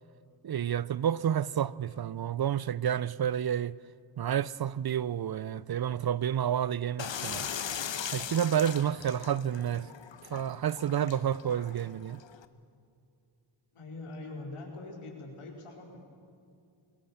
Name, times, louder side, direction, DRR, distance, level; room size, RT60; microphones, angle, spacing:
voice 1, 0.4-3.8 4.2-7.5 8.1-9.9 10.3-12.2, right 9 dB, 50° right, 0.5 m, -30 dB
sound 1, 7.0-12.5, left 8 dB, 60° left, 1.1 m, -39 dB
voice 2, 13.7-16.0, left 2 dB, 80° left, 4.3 m, -43 dB
22.5 x 19.5 x 7.3 m
cardioid pair, 55°, 50 cm